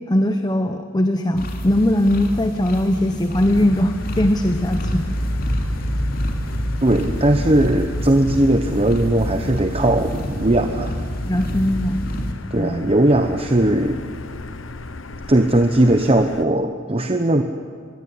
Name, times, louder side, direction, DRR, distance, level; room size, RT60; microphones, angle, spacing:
voice 1, 0.1-5.1 11.3-12.0 12.6-12.9, left 1 dB, 20° left, 7 dB, 1.0 m, -20 dB
sound 1, 1.4-12.3, equal, 50° left, 3.1 m, -27 dB
Motor vehicle (road), 3.4-16.4, left 2 dB, 85° left, 1.2 m, -36 dB
voice 2, 6.8-11.0 12.5-14.0 15.3-17.4, right 1 dB, 30° right, 6 dB, 1.0 m, -18 dB
25.5 x 22.0 x 9.7 m, 2.1 s
head